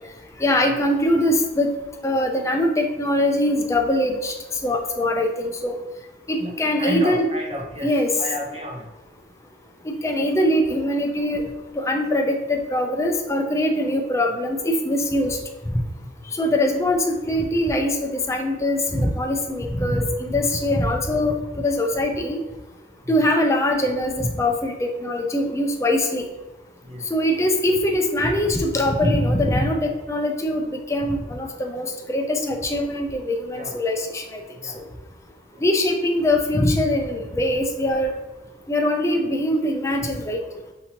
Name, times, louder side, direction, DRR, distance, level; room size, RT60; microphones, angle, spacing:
voice 1, 0.4-1.7 2.0-4.3 4.6-5.8 6.3-7.3 7.8-8.1 10.0-11.4 11.8-15.4 16.3-22.4 23.1-26.3 27.1-34.4 34.7-34.8 35.6-38.1 38.7-40.4, left 1 dB, 15° left, 3 dB, 0.5 m, -22 dB
voice 2, 6.4-7.9 8.2-8.9 26.9-27.0 33.5-33.8 34.6-34.7, equal, 30° right, 0 dB, 0.8 m, -31 dB
5.7 x 2.7 x 2.9 m, 1.1 s
head